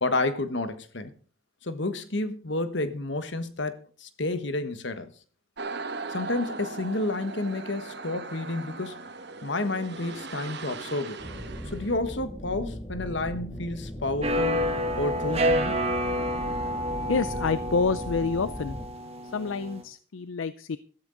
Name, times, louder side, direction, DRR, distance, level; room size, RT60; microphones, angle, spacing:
voice 1, 0.0-1.1 1.6-5.1 6.1-9.0 9.4-11.2 11.7-14.6 15.0-15.8, left 2 dB, 60° left, 1.3 m, -30 dB
sound 1, 5.6-12.0, right 3 dB, 55° right, 1.2 m, -39 dB
sound 2, 11.2-18.9, equal, 15° left, 1.6 m, -38 dB
sound 3, 14.2-19.8, equal, 30° right, 1.8 m, -29 dB
voice 2, 17.1-18.8 19.3-20.8, left 4 dB, 75° left, 0.5 m, -28 dB
13.5 x 13.5 x 3.9 m
head